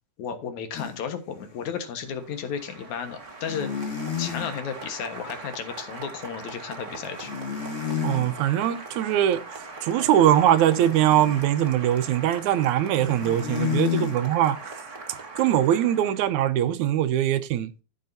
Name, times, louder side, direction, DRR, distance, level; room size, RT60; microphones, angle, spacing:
voice 1, 0.2-7.3, left 7 dB, 75° left, 2.8 m, -34 dB
sound 1, 0.7-0.9 1.5-1.6 3.5-4.5 7.2-8.3 10.8-11.5 13.0-14.2, left 8 dB, 45° left, 2.6 m, -30 dB
Applause, 2.0-16.5, right 3 dB, 30° right, 1.6 m, -41 dB
voice 2, 8.0-17.7, right 11 dB, 80° right, 2.2 m, -22 dB
15.0 x 6.6 x 2.7 m
omnidirectional pair, 3.3 m